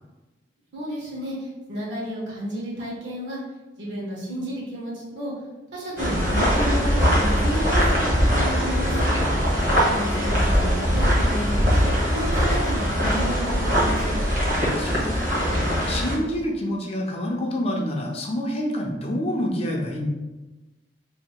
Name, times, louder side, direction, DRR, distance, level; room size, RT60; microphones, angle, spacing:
voice 1, 0.7-3.4 3.8-5.3 5.7-9.1 9.9-11.8 12.1-14.2, equal, 60° right, -5 dB, 1.2 m, -32 dB
sound 1, 6.0-16.2, equal, 40° right, 1.0 m, -21 dB
voice 2, 9.5-10.0 14.6-15.2 15.9-20.1, left 1 dB, 30° left, 0 dB, 0.5 m, -28 dB
2.8 x 2.7 x 4.4 m, 1.1 s
head